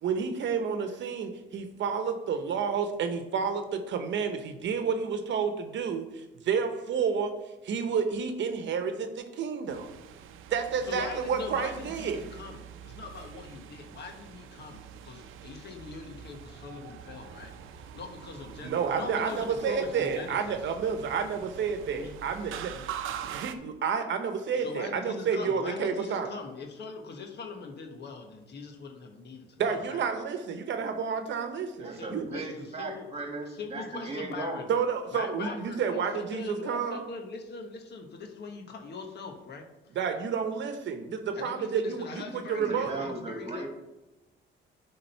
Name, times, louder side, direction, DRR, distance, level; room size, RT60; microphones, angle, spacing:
voice 1, 0.0-7.3 7.6-9.9 10.5-12.2 18.6-22.7 23.3-26.3 29.6-32.2 34.7-37.1 39.9-43.0, right 6 dB, 70° right, 7 dB, 0.9 m, -30 dB
sound 1, 9.7-23.5, right 9 dB, 85° right, 0.6 m, -44 dB
voice 2, 10.9-17.5 17.9-20.6 22.0-22.1 22.8-22.9 23.3-23.4 24.6-30.0 31.8-33.1 33.5-34.7 35.1-39.7 41.3-43.7, left 4 dB, 60° left, 3 dB, 1.3 m, -42 dB
voice 3, 31.8-34.7 35.4-35.6 42.4-43.7, right 3 dB, 30° right, 3 dB, 1.8 m, -37 dB
10.0 x 3.7 x 5.6 m, 1.0 s
cardioid pair, 90°, 20 cm